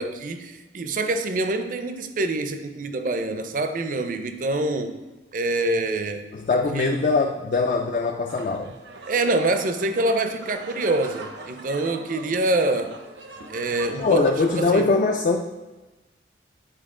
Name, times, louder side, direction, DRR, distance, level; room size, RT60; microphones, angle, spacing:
voice 1, 0.0-5.0 5.3-6.3 6.7-7.0 9.1-13.0 13.5-14.3 14.6-14.9, right 2 dB, 45° right, 8 dB, 0.5 m, -25 dB
voice 2, 6.3-8.7 14.0-15.4, left 3 dB, 45° left, 3 dB, 0.4 m, -22 dB
sound 1, 8.3-14.7, right 3 dB, 75° right, 0.8 m, -41 dB
9.0 x 4.4 x 3.7 m, 1.2 s
head